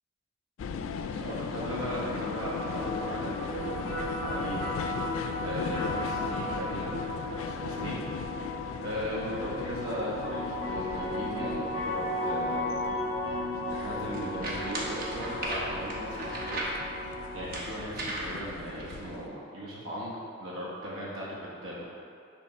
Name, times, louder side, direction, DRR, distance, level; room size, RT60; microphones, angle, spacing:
sound 1, 0.6-19.3, left 6 dB, 80° left, 0.3 m, -39 dB
voice 1, 1.1-4.6 5.4-7.0 7.3-8.0 8.8-12.6 13.7-16.6 17.3-21.8, equal, 90° right, -6 dB, 1.1 m, -37 dB
sound 2, 1.6-17.6, left 1 dB, 20° right, 1.4 m, -35 dB
sound 3, 13.8-19.2, right 1 dB, 50° right, 0.9 m, -37 dB
5.4 x 3.5 x 5.4 m, 2.4 s
head